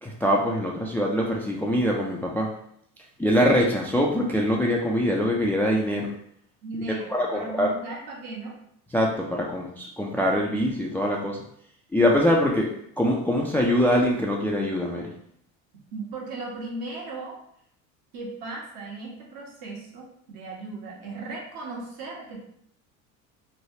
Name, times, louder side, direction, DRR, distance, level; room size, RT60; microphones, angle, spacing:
voice 1, 0.0-2.5 3.2-6.1 7.1-7.7 8.9-11.4 11.9-12.7 13.0-15.1, equal, 5° left, -1 dB, 0.3 m, -23 dB
voice 2, 6.6-8.5 12.0-12.1 15.9-17.4 18.1-22.4, right 3 dB, 65° right, -2 dB, 1.2 m, -37 dB
3.2 x 2.3 x 2.7 m, 0.69 s
hypercardioid pair, 80°, 40 cm